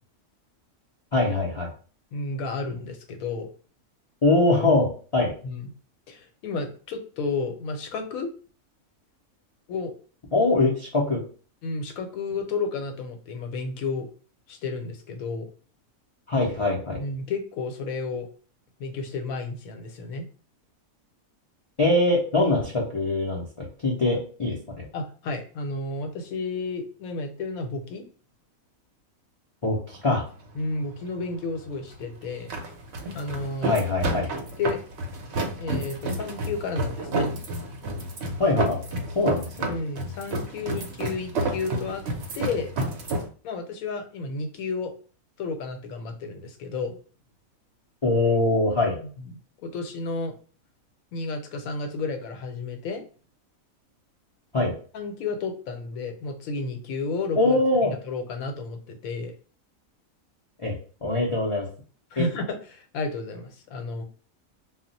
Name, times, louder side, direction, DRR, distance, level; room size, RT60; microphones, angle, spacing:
voice 1, 1.1-1.7 4.2-5.3 10.3-11.2 16.3-17.0 21.8-24.9 29.6-30.2 33.6-34.3 38.4-38.8 39.1-39.7 48.0-49.0 54.5-54.7 57.4-57.9 60.6-60.7 61.0-61.7 62.2-62.3, left 2 dB, 55° left, -4 dB, 0.3 m, -23 dB
voice 2, 2.1-3.5 5.4-5.7 6.1-8.3 9.7-9.9 11.6-14.1 14.5-15.5 17.0-18.3 18.8-20.3 24.9-28.0 30.5-32.5 33.1-33.7 34.0-34.8 35.6-37.3 39.7-42.0 42.3-42.7 43.4-44.9 45.4-47.0 49.2-49.3 49.6-50.3 51.1-53.0 54.9-59.3 62.1-64.0, left 3 dB, 85° left, 5 dB, 1.0 m, -32 dB
sound 1, 29.9-43.3, right 2 dB, 60° right, 0.7 m, -31 dB
2.3 x 2.0 x 3.8 m, 0.40 s
omnidirectional pair, 1.4 m